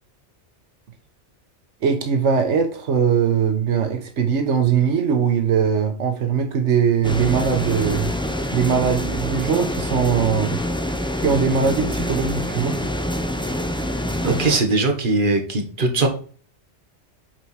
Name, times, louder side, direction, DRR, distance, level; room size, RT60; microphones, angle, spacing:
voice 1, 1.8-10.6 11.2-12.8, right 7 dB, 90° right, 1.3 m, -21 dB
sound 1, 7.0-14.6, left 1 dB, 5° left, 0.6 m, -26 dB
voice 2, 14.2-16.1, right 3 dB, 45° right, 1.6 m, -20 dB
7.3 x 4.6 x 5.8 m
omnidirectional pair, 1.2 m